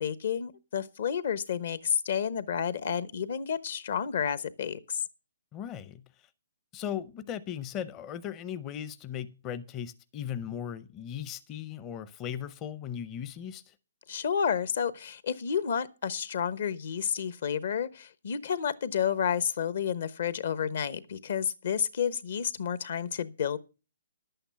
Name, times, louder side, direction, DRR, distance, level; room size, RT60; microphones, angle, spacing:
voice 1, 0.0-5.0 14.1-23.6, left 7 dB, 60° left, 1.0 m, -30 dB
voice 2, 5.5-6.3 6.7-13.7, left 9 dB, 25° left, 0.6 m, -38 dB
11.0 x 8.9 x 5.8 m
hypercardioid pair, 145°, 0 cm